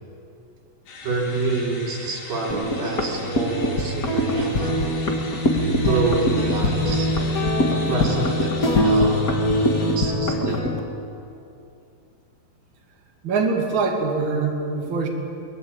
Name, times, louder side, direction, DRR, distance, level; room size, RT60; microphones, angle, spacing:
sound 1, 0.9-10.0, left 3 dB, 85° left, 5.1 m, -39 dB
voice 1, 1.0-4.9 5.7-7.1 7.7-9.3 9.5-10.8, right 3 dB, 75° right, -2 dB, 5.9 m, -27 dB
sound 2, 2.5-10.8, left 1 dB, 35° left, 1.6 m, -22 dB
voice 2, 13.2-15.1, right 4 dB, 35° right, 1 dB, 3.0 m, -23 dB
23.0 x 20.5 x 8.9 m, 2.7 s
omnidirectional pair, 4.0 m